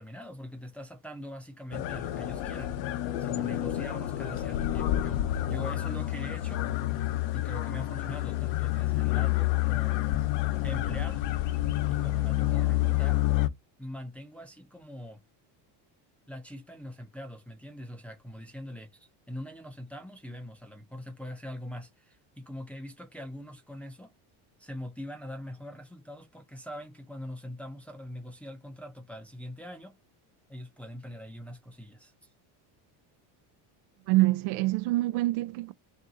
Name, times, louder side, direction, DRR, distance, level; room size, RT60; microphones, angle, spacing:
voice 1, 0.0-2.8 3.0-6.6 7.3-10.0 10.6-11.3 11.9-13.2 13.8-15.2 16.3-24.1 24.6-29.9 30.5-32.1, equal, 5° left, 0.5 m, -42 dB
sound 1, 1.7-13.5, left 15 dB, 65° left, 0.8 m, -29 dB
voice 2, 34.1-35.7, right 18 dB, 80° right, 0.6 m, -25 dB
3.7 x 2.7 x 3.8 m
cardioid pair, 160°, 46 cm